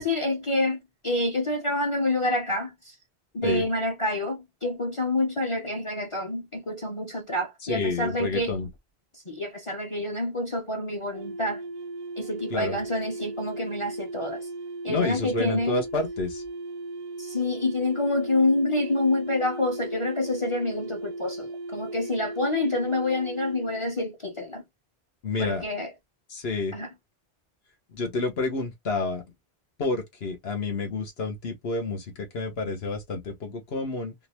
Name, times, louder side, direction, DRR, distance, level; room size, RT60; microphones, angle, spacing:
voice 1, 0.0-2.7 3.3-8.5 9.3-11.6 12.2-14.5 14.8-15.8 17.2-24.6 25.4-25.9 26.7-26.9, left 2 dB, 35° left, 0.8 m, -27 dB
voice 2, 7.6-8.7 12.5-12.8 14.9-16.4 25.2-25.7 26.3-26.8 27.9-29.2 29.8-34.1, left 3 dB, 75° left, 1.3 m, -29 dB
sound 1, 11.1-23.9, right 2 dB, 55° right, 0.6 m, -37 dB
3.7 x 2.6 x 2.9 m
omnidirectional pair, 1.1 m